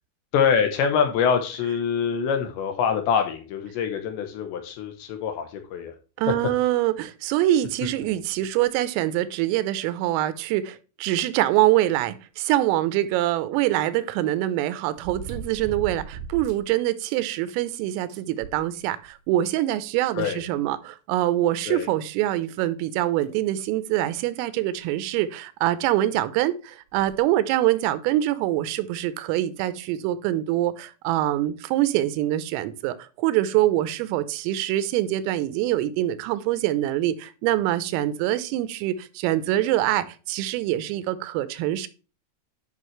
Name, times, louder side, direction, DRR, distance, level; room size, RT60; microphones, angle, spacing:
voice 1, 0.3-5.9 20.2-20.4 21.7-21.9, left 7 dB, 75° left, 2.9 m, -24 dB
voice 2, 6.2-41.9, right 14 dB, 90° right, 3.4 m, -24 dB
sound 1, 13.0-13.1 15.0-16.7 17.1-17.2 17.6-17.7 18.1-19.2 20.2-20.3 21.7-21.8 22.4-22.5 23.2-23.4 24.8-24.9 25.1-25.2 26.9-27.2 27.9-28.0, right 6 dB, 60° right, 3.3 m, -38 dB
11.0 x 5.5 x 3.2 m
omnidirectional pair, 5.8 m